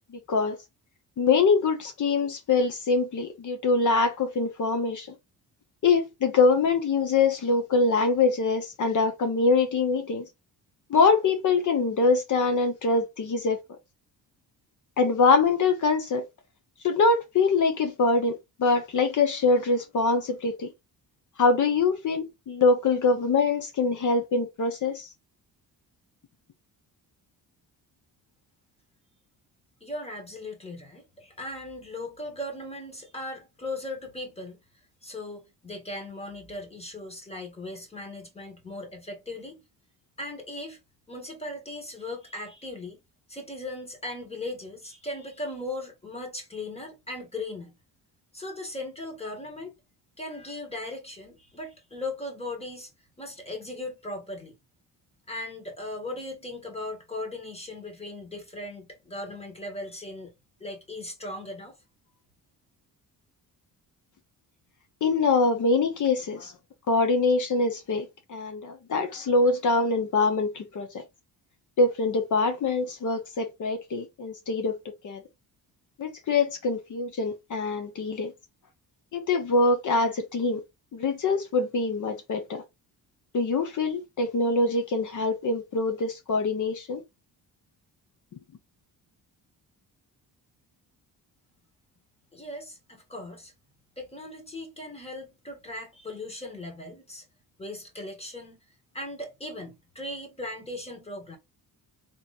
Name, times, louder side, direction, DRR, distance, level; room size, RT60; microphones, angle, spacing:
voice 1, 0.1-0.6 1.2-5.1 5.8-10.2 10.9-13.6 15.0-16.3 16.8-20.7 21.4-25.1 65.0-66.5 66.9-71.0 71.8-74.8 75.0-75.2 76.0-78.3 79.1-80.6 80.9-82.6 83.3-87.0, left 3 dB, 50° left, 0.9 m, -24 dB
voice 2, 29.8-34.6 35.0-39.6 40.2-40.8 41.1-43.0 43.3-47.7 48.3-49.7 50.2-52.9 53.2-54.6 55.3-60.3 60.6-61.8 92.3-93.5 94.0-97.2 97.6-98.6 98.9-101.4, left 2 dB, 15° left, 1.6 m, -38 dB
4.0 x 3.0 x 4.1 m
cardioid pair, 155°, 38 cm